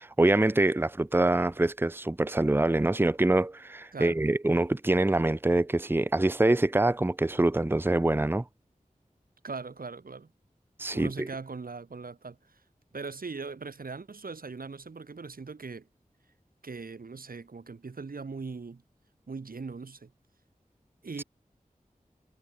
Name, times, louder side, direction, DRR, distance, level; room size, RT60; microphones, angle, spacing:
voice 1, 0.0-8.4 10.8-11.3, right 2 dB, 15° right, 0.6 m, -25 dB
voice 2, 9.4-10.3 10.9-12.6 12.9-15.9 16.6-18.8 19.3-20.1 21.0-21.2, right 4 dB, 90° right, 1.3 m, -40 dB
wide cardioid pair, 45°, 14 cm